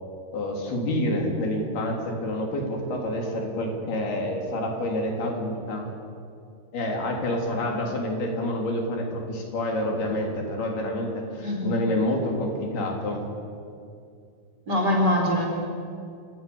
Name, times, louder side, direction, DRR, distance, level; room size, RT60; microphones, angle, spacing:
voice 1, 0.3-5.9 6.7-13.2, left 1 dB, 75° left, 1 dB, 5.4 m, -28 dB
voice 2, 11.4-11.7 14.7-15.5, left 1 dB, 25° right, -1 dB, 4.7 m, -23 dB
29.5 x 18.5 x 7.1 m, 2.4 s
omnidirectional pair, 4.5 m